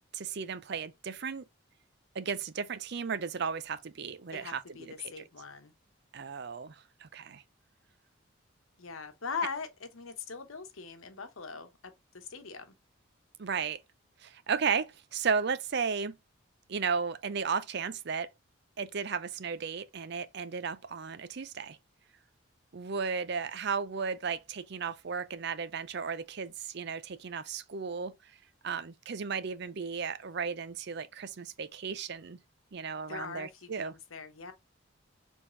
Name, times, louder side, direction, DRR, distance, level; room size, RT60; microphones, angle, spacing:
voice 1, 0.1-1.4 2.1-5.3 6.1-7.4 13.4-13.8 14.2-16.2 16.7-18.3 18.8-21.8 22.7-28.3 28.6-32.4 32.7-33.9, right 5 dB, 55° right, 0.5 m, -34 dB
voice 2, 4.3-5.7 8.8-12.7 33.1-34.5, left 5 dB, 80° left, 1.0 m, -41 dB
5.0 x 3.5 x 2.6 m
head